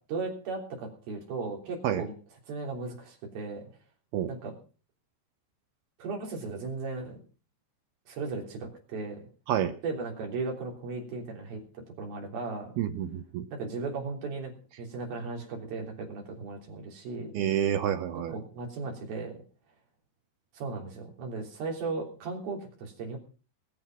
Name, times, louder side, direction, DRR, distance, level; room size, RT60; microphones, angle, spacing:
voice 1, 0.1-2.1 2.5-3.6 4.3-4.6 6.0-7.2 8.1-9.2 9.8-11.6 12.0-12.7 13.5-14.5 14.8-17.3 18.3-19.4 20.5-23.2, right 4 dB, 55° right, 1 dB, 4.9 m, -36 dB
voice 2, 12.8-13.5 17.3-18.4, right 10 dB, 75° right, 8 dB, 2.4 m, -28 dB
20.5 x 7.9 x 6.0 m, 0.38 s
omnidirectional pair, 5.5 m